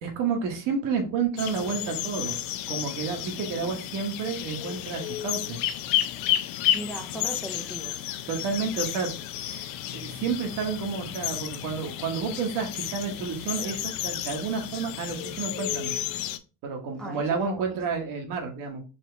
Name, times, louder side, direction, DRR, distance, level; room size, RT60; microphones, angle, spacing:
voice 1, 0.0-2.4 2.7-5.6 8.3-9.1 9.4-15.9 16.6-18.8, right 5 dB, 65° right, 1.3 m, -30 dB
sound 1, 1.4-16.4, left 12 dB, 80° left, 0.5 m, -32 dB
voice 2, 6.7-8.1 17.0-17.8, right 1 dB, ahead, 0.4 m, -38 dB
4.2 x 2.9 x 3.3 m
cardioid pair, 165°, 34 cm